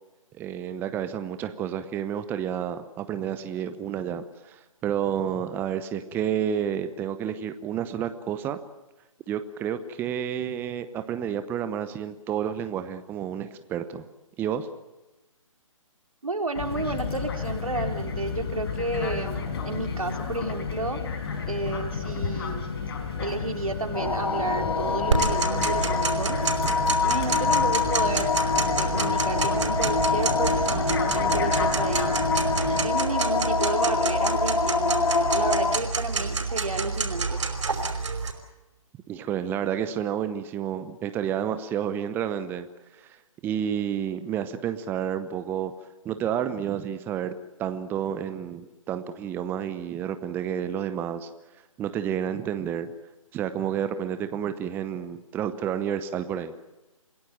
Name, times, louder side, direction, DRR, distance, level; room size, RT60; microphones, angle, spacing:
voice 1, 0.4-8.6 9.3-14.1 14.4-14.7 39.1-42.7 42.9-45.7 46.0-47.3 47.6-51.3 51.8-52.9 53.3-56.5, right 9 dB, 10° right, 10 dB, 0.8 m, -30 dB
voice 2, 16.2-21.0 21.5-22.7 23.2-26.4 27.0-32.2 32.8-37.4, right 2 dB, 80° right, 5 dB, 3.5 m, -31 dB
sound 1, 16.6-32.9, left 5 dB, 45° left, 4.6 m, -32 dB
sound 2, 23.9-35.8, left 4 dB, 85° left, 1.6 m, -26 dB
Tick-tock, 25.1-38.3, right 4 dB, 60° right, 5.2 m, -29 dB
27.0 x 17.0 x 9.0 m, 1.1 s
figure-of-eight pair, 140°, 18 cm